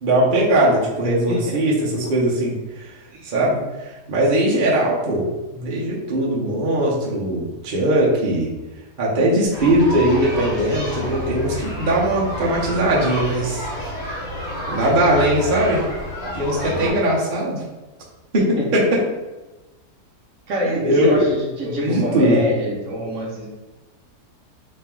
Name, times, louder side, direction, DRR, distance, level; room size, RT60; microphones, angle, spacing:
voice 1, 0.0-2.5 3.2-8.5 9.0-13.7 14.7-15.8 16.3-17.6 18.3-19.0 20.8-21.3 21.6-22.4, right 1 dB, 45° right, -5 dB, 0.7 m, -20 dB
voice 2, 1.3-1.6 3.1-3.3 16.7-17.0 18.6-18.7 20.5-23.5, equal, 60° right, -3 dB, 1.0 m, -25 dB
sound 1, 9.5-16.9, left 1 dB, 60° left, 1.3 m, -29 dB
3.2 x 2.9 x 3.6 m, 1.1 s
omnidirectional pair, 1.7 m